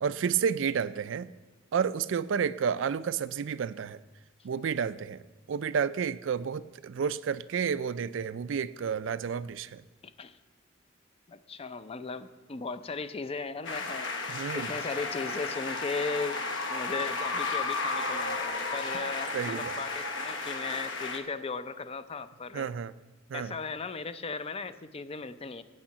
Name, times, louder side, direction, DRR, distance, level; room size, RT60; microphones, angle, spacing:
voice 1, 0.0-1.3 1.7-4.0 4.4-5.2 5.5-9.8 14.3-14.7 19.3-19.7 22.5-22.9 23.3-23.6, right 7 dB, 70° right, 16 dB, 0.4 m, -30 dB
voice 2, 10.0-10.4 11.3-16.4 16.7-22.7 23.3-25.6, left 4 dB, 30° left, 12 dB, 0.5 m, -37 dB
sound 1, 13.6-21.2, left 3 dB, 65° left, 1.1 m, -33 dB
8.7 x 6.5 x 8.3 m, 1.1 s
head